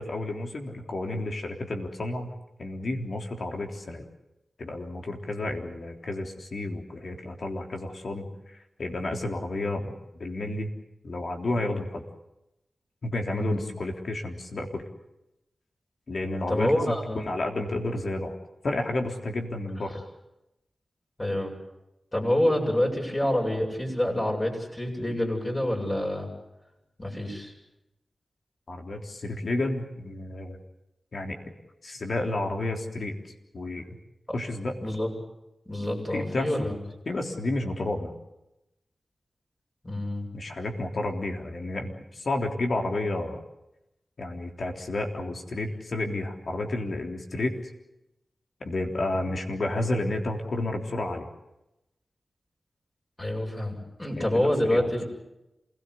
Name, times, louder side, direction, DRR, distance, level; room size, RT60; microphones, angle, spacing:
voice 1, 0.0-2.3 2.6-4.1 4.6-10.7 11.0-12.0 13.0-14.8 16.1-18.4 18.6-20.0 28.7-30.6 31.1-31.4 31.8-33.1 33.5-34.0 34.3-34.8 36.1-36.7 37.1-38.1 40.3-43.4 44.2-47.6 48.6-51.3 54.2-54.9, left 2 dB, 70° left, 3 dB, 3.5 m, -31 dB
voice 2, 13.4-13.7 16.5-17.2 21.2-21.5 22.1-26.3 27.0-27.5 34.8-35.1 35.7-36.7 39.8-40.3 53.2-55.0, left 1 dB, 30° left, -1 dB, 7.9 m, -27 dB
28.0 x 18.0 x 8.2 m, 0.90 s
cardioid pair, 45°, 0 cm